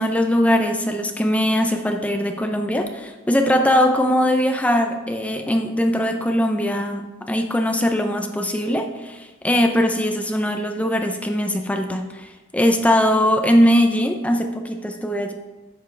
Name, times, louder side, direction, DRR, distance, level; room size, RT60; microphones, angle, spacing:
voice 1, 0.0-15.3, equal, 5° left, 4 dB, 0.5 m, -20 dB
10.0 x 7.3 x 3.3 m, 1.2 s
head